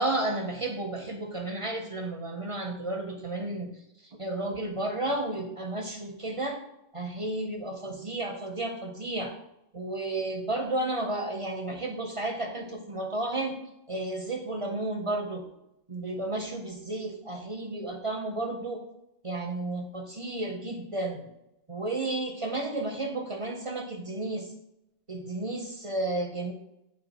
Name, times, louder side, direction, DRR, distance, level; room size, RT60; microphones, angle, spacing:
voice 1, 0.0-3.7 4.0-6.6 6.9-9.3 9.7-13.6 13.9-15.5 15.9-18.9 19.2-21.3 21.7-24.5 25.1-26.5, right 2 dB, 35° right, 2 dB, 0.6 m, -32 dB
8.9 x 3.2 x 4.1 m, 0.85 s
omnidirectional pair, 1.3 m